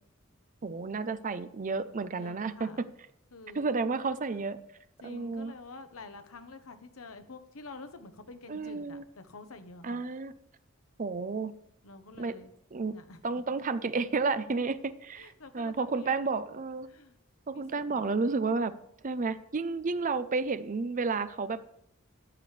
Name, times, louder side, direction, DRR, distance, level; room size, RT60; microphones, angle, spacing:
voice 1, 0.6-2.9 3.5-4.6 5.0-5.5 8.5-9.0 9.8-10.3 11.0-11.5 12.2-12.3 12.7-13.0 13.2-16.9 17.5-18.7 19.0-21.7, right 4 dB, 35° right, 13 dB, 0.5 m, -31 dB
voice 2, 2.2-2.8 3.3-3.7 5.0-10.0 11.8-12.5 12.9-13.2 15.2-16.1 16.9-17.2 17.5-18.2, left 3 dB, 75° left, 9 dB, 0.9 m, -48 dB
13.5 x 9.7 x 3.3 m, 0.77 s
head